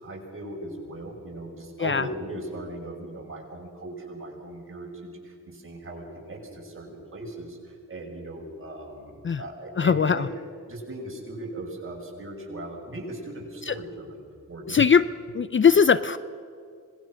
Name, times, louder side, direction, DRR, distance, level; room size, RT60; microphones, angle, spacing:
voice 1, 0.0-10.3 10.7-14.2 14.5-14.8, right 1 dB, 40° right, 0 dB, 6.5 m, -38 dB
voice 2, 9.8-10.3 13.6-13.8 14.7-15.1 15.3-16.2, left 6 dB, 35° left, 15 dB, 0.6 m, -20 dB
26.0 x 20.5 x 6.4 m, 2.2 s
cardioid pair, 85°, 32 cm